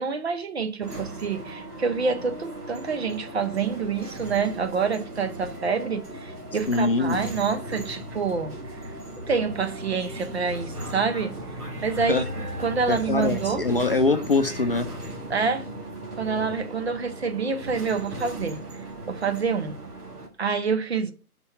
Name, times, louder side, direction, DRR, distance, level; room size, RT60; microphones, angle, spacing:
voice 1, 0.0-8.8 9.3-11.3 11.8-12.2 12.6-13.6 15.3-15.7 16.1-18.6 19.1-19.8 20.4-21.1, right 5 dB, 45° right, 0.7 m, -27 dB
sound 1, 0.8-20.3, right 1 dB, 75° right, 1.7 m, -37 dB
voice 2, 6.7-7.2 12.0-12.3 12.9-14.9, left 3 dB, 40° left, 0.5 m, -23 dB
5.5 x 4.4 x 4.3 m
figure-of-eight pair, 135°, 46 cm